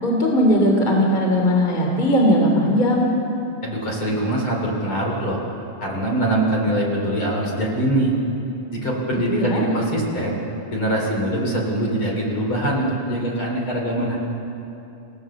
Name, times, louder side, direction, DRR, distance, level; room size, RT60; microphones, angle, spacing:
voice 1, 0.0-3.1 9.3-9.6, equal, 15° left, 0 dB, 2.8 m, -18 dB
voice 2, 3.6-5.4 5.8-8.1 8.7-10.4 10.7-14.2, right 1 dB, 40° left, -1 dB, 3.6 m, -23 dB
28.5 x 17.0 x 7.1 m, 2.9 s
omnidirectional pair, 3.8 m